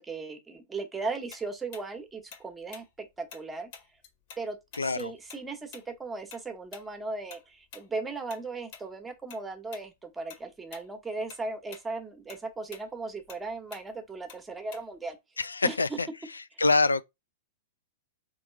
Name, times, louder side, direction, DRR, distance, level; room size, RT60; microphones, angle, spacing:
voice 1, 0.0-3.7 4.4-15.2 15.6-16.0, right 3 dB, 10° right, 1.1 m, -37 dB
Tick-tock, 1.3-4.4 4.7-9.4 9.7-9.9 10.3-10.9 11.2-15.1, left 6 dB, 50° left, 1.5 m, -49 dB
voice 2, 4.8-5.1 15.4-16.1 16.3-17.0, left 3 dB, 85° left, 0.3 m, -25 dB
3.5 x 3.2 x 4.6 m
figure-of-eight pair, 105°, 0 cm